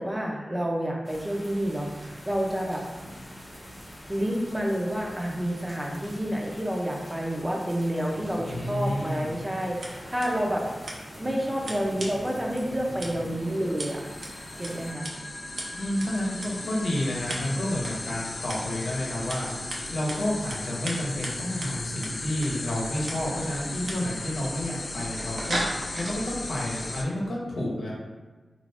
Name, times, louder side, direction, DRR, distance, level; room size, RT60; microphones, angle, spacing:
voice 1, 0.0-2.9 4.1-10.9 11.2-14.0 14.6-15.1, equal, 15° right, -1 dB, 0.5 m, -29 dB
sound 1, 1.0-14.9, equal, 15° left, 0.8 m, -43 dB
voice 2, 8.5-9.3 15.7-19.5 19.9-25.6 25.9-27.9, left 1 dB, 85° left, -4 dB, 0.9 m, -30 dB
Scissors, 9.6-26.2, right 1 dB, 75° right, 0.6 m, -40 dB
sound 2, 13.4-27.0, left 2 dB, 50° left, 0.3 m, -37 dB
2.8 x 2.5 x 3.4 m, 1.3 s
wide cardioid pair, 95°, 0 cm